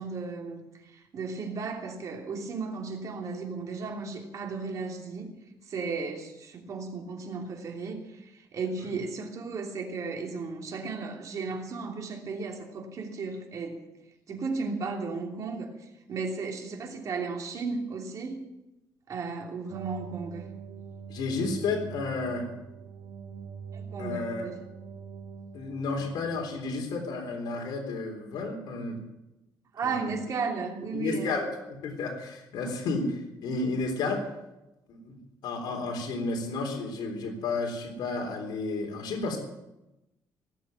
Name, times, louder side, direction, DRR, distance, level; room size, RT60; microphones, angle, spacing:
voice 1, 0.0-5.3 5.7-13.8 14.3-15.7 16.1-18.4 19.1-20.4 23.7-24.6 29.7-31.4 32.6-32.7, right 4 dB, 45° right, 2 dB, 3.1 m, -35 dB
sound 1, 19.7-26.8, right 6 dB, 70° right, 3.8 m, -44 dB
voice 2, 21.1-22.5 24.0-24.5 25.5-29.0 29.8-30.1 30.9-34.3 34.9-35.1 35.4-39.4, left 3 dB, 70° left, 1 dB, 3.7 m, -32 dB
19.0 x 7.7 x 9.4 m, 0.95 s
cardioid pair, 140°, 8 cm